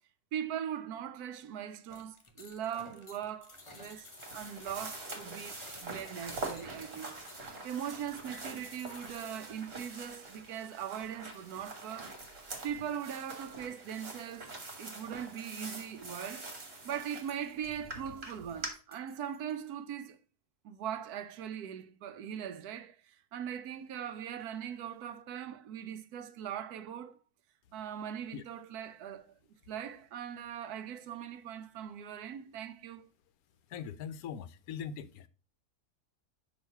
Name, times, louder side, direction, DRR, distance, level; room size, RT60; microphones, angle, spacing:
voice 1, 0.3-4.1 4.3-12.2 12.6-14.5 14.8-16.5 16.8-20.2 20.6-27.2 27.7-29.3 29.7-33.1, right 9 dB, 75° right, 1.1 m, -40 dB
sound 1, 1.9-9.4, left 3 dB, 40° left, 0.4 m, -54 dB
sound 2, 3.5-18.7, right 2 dB, 40° right, 1.7 m, -45 dB
sound 3, 15.3-19.7, equal, 5° left, 3.5 m, -64 dB
voice 2, 33.7-35.3, left 7 dB, 75° left, 1.0 m, -41 dB
6.2 x 3.1 x 5.4 m
omnidirectional pair, 1.7 m